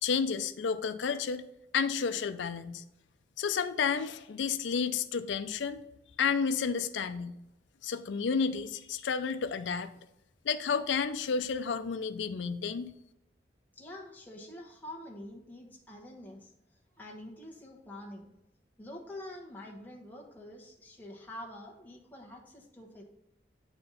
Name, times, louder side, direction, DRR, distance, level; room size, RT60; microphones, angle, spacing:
voice 1, 0.0-1.4 1.7-2.8 3.4-5.8 6.2-7.3 7.8-9.9 10.4-12.9, left 6 dB, 90° left, 11 dB, 0.5 m, -31 dB
voice 2, 13.7-18.3 18.8-23.0, left 1 dB, 10° left, -1 dB, 1.1 m, -46 dB
8.6 x 4.4 x 4.0 m, 0.86 s
head